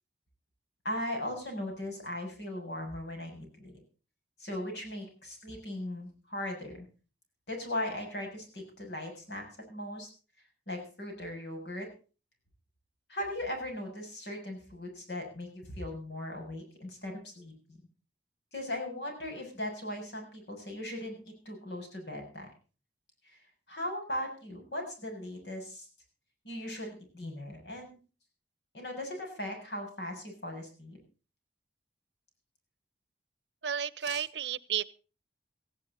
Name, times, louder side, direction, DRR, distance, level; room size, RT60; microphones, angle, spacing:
voice 1, 0.8-3.8 4.4-6.9 7.5-10.1 10.7-11.9 13.1-17.8 18.5-22.5 23.2-23.4 23.7-25.9 26.4-28.0 28.7-31.0 34.0-34.2, left 1 dB, 70° left, 3 dB, 7.3 m, -38 dB
voice 2, 33.6-34.8, right 8 dB, 85° right, 20 dB, 0.8 m, -32 dB
18.0 x 15.5 x 4.1 m, 0.35 s
head